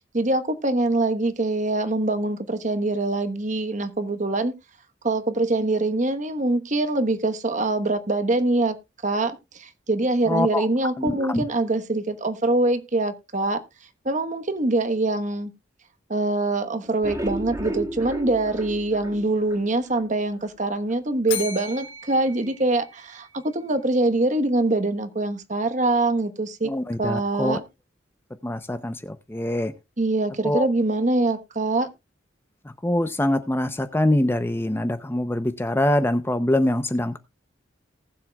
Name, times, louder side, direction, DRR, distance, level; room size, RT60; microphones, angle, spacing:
voice 1, 0.0-4.5 5.0-8.7 9.0-13.6 14.0-15.5 16.1-26.7 27.0-27.6 30.0-31.9, right 2 dB, 40° right, 1.2 m, -24 dB
voice 2, 10.3-10.7 11.0-11.5 26.6-27.6 28.4-29.7 30.4-30.7 32.6-37.2, left 1 dB, 10° left, 0.6 m, -24 dB
sound 1, 16.8-20.1 20.4-20.5 20.9-21.0 21.4-21.5, right 1 dB, 15° right, 2.5 m, -33 dB
Bell, 21.3-23.5, left 7 dB, 70° left, 2.9 m, -36 dB
19.0 x 7.5 x 2.3 m
head